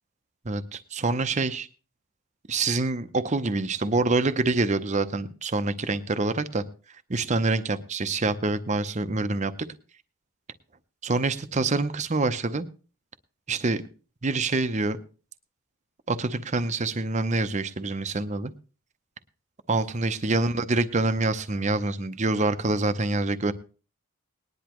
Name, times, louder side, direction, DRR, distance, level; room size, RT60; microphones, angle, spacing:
voice 1, 0.4-1.7 2.5-6.6 7.1-9.5 11.0-12.7 13.5-13.8 14.2-15.0 16.1-18.5 19.7-23.5, right 3 dB, 35° right, 12 dB, 0.7 m, -26 dB
19.5 x 10.5 x 3.0 m, 0.36 s
head